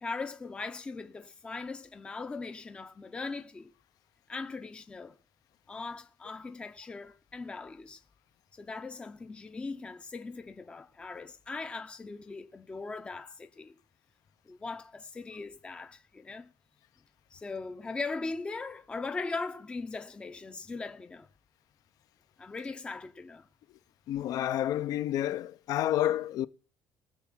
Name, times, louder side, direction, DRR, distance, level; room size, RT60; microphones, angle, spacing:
voice 1, 0.0-3.7 4.3-5.2 5.7-8.0 8.5-13.7 14.5-16.5 17.3-21.3 22.4-23.4, left 3 dB, 15° left, 0.6 m, -39 dB
voice 2, 24.1-26.5, left 12 dB, 55° left, 0.6 m, -29 dB
19.5 x 7.2 x 6.1 m
cardioid pair, 155°, 8 cm